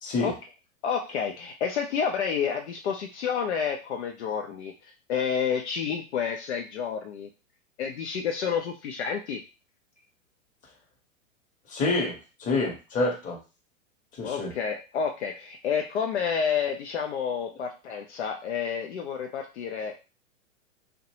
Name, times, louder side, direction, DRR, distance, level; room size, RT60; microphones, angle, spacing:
voice 1, 0.0-0.3 11.7-13.4 14.2-14.5, left 3 dB, 20° left, -1 dB, 0.9 m, -27 dB
voice 2, 0.8-7.3 7.8-9.4 14.2-19.9, left 7 dB, 60° left, 3 dB, 0.5 m, -29 dB
2.6 x 2.2 x 2.8 m, 0.30 s
figure-of-eight pair, 105°, 39 cm